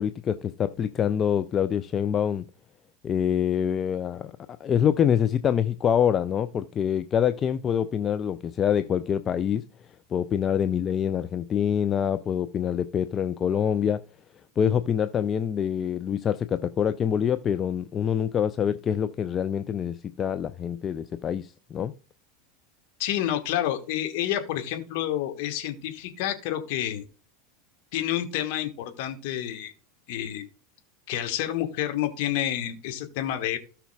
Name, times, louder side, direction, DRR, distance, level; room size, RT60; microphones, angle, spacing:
voice 1, 0.0-2.5 3.0-9.7 10.1-14.0 14.6-21.9, left 8 dB, 30° left, 0.4 m, -25 dB
voice 2, 23.0-27.1 27.9-29.7 30.1-30.5 31.1-33.6, left 12 dB, 50° left, 1.5 m, -29 dB
17.0 x 5.7 x 2.3 m
figure-of-eight pair, 85°, 0 cm